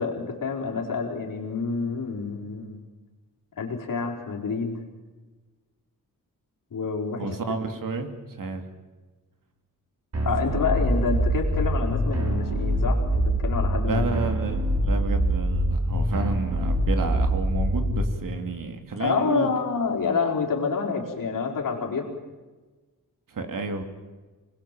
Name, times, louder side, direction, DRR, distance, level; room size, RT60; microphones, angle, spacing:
voice 1, 0.0-2.8 3.6-4.8 6.7-7.3 10.2-14.0 19.0-22.1, left 5 dB, 65° left, 1 dB, 4.6 m, -28 dB
voice 2, 7.2-8.6 13.8-19.5 23.3-23.8, right 4 dB, 65° right, 6 dB, 3.0 m, -31 dB
sound 1, 10.1-18.1, right 1 dB, 45° right, 6.4 m, -24 dB
26.0 x 21.0 x 7.6 m, 1.3 s
wide cardioid pair, 125°, 35 cm